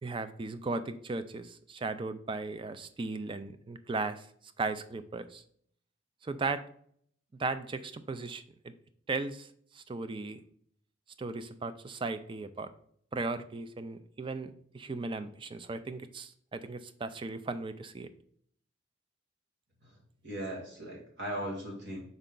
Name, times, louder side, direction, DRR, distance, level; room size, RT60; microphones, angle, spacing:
voice 1, 0.0-4.3 4.6-5.4 6.2-6.6 7.4-8.7 9.1-10.4 11.2-12.7 13.1-18.1, right 3 dB, 25° right, 11 dB, 0.3 m, -37 dB
voice 2, 19.8-22.0, right 1 dB, 60° right, -2 dB, 1.9 m, -39 dB
5.4 x 4.5 x 3.8 m, 0.64 s
head